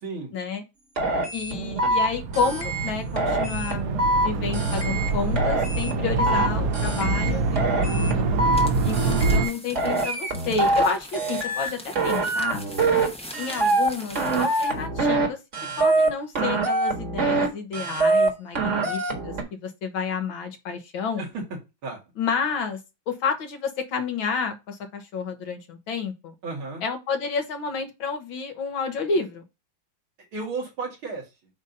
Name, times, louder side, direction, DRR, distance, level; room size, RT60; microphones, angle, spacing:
voice 1, 0.3-0.6 1.3-3.8 4.2-8.3 8.8-12.6 13.4-15.4 15.8-21.2 22.2-22.8 23.1-26.3 26.8-29.4, left 5 dB, 75° left, 5 dB, 1.9 m, -30 dB
sound 1, 1.0-2.1 2.3-2.9 3.2-4.3 4.5-5.1 5.4-6.5 6.7-7.3 7.6-8.7 8.9-9.5 9.8-10.9 11.1-11.7 12.0-13.1 13.3-13.9 14.2-15.3 15.5-16.1 16.4-17.5 17.7-18.3 18.6-19.4, right 2 dB, 40° right, 1.7 m, -24 dB
sound 2, 1.4-9.5, right 3 dB, 65° right, 0.9 m, -26 dB
sound 3, 8.5-14.8, equal, 5° left, 0.5 m, -42 dB
voice 2, 26.4-26.8 30.3-31.3, right 3 dB, 90° right, -1 dB, 3.0 m, -34 dB
8.0 x 2.8 x 5.2 m, 0.25 s
omnidirectional pair, 2.2 m